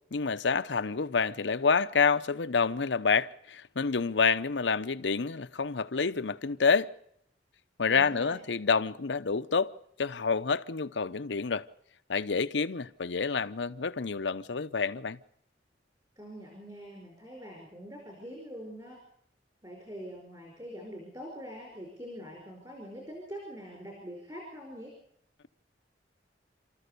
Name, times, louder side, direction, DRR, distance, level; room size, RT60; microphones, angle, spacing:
voice 1, 0.1-6.9 7.8-9.7 10.0-11.7 12.1-15.2, left 5 dB, 75° left, 0.7 m, -28 dB
voice 2, 7.9-8.4 16.2-19.0 19.6-24.9, equal, 25° right, 5.1 m, -44 dB
29.0 x 14.0 x 6.8 m
head